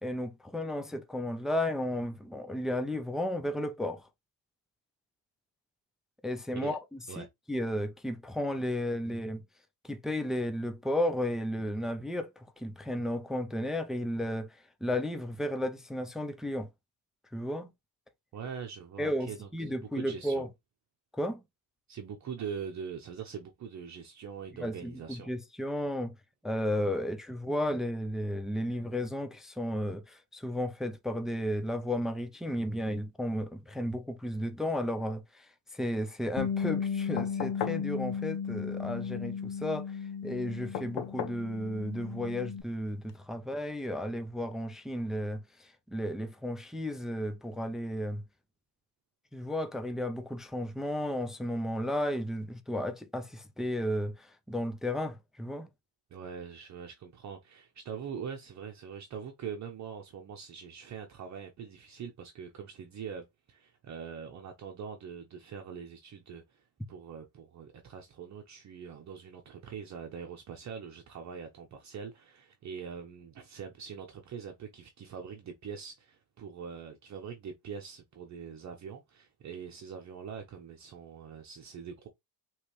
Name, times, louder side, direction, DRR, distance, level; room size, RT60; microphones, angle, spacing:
voice 1, 0.0-4.1 6.2-9.4 9.8-16.7 17.3-17.7 19.0-20.5 21.1-21.4 24.6-26.1 26.4-48.2 49.3-55.7, left 1 dB, ahead, 0.4 m, -33 dB
voice 2, 18.3-20.5 21.9-25.3 56.1-82.1, right 7 dB, 40° right, 0.9 m, -43 dB
Bass guitar, 36.4-42.6, left 6 dB, 80° left, 1.4 m, -35 dB
sound 1, 37.2-37.9 40.7-41.5 43.1-43.2, left 9 dB, 65° left, 0.9 m, -36 dB
5.0 x 3.3 x 3.1 m
cardioid pair, 135°, 46 cm